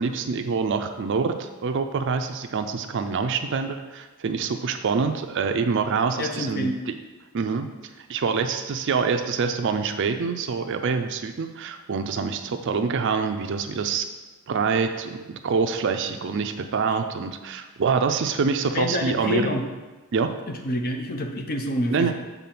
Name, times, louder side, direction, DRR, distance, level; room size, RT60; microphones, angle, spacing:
voice 1, 0.0-7.0 7.3-7.7 8.0-14.1 14.5-19.5 20.1-20.3 21.9-22.1, right 5 dB, 60° right, 7 dB, 0.4 m, -26 dB
voice 2, 6.2-6.8 16.9-17.0 18.7-19.6 20.6-22.1, left 1 dB, 45° left, 4 dB, 0.8 m, -27 dB
7.0 x 3.7 x 5.9 m, 1.2 s
head